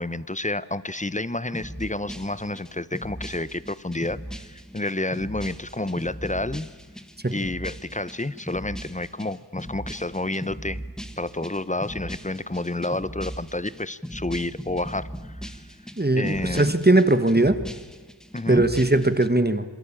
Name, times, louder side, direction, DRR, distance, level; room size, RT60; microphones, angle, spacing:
voice 1, 0.0-6.7 7.3-10.8 11.2-15.5 16.2-16.7 18.3-18.7, left 2 dB, 15° left, 17 dB, 0.8 m, -30 dB
sound 1, 1.5-19.3, equal, ahead, 1.8 m, -39 dB
voice 2, 16.0-17.6 18.5-19.6, right 2 dB, 20° right, 11 dB, 1.5 m, -19 dB
27.0 x 22.5 x 8.9 m, 1.3 s
wide cardioid pair, 55°, 45 cm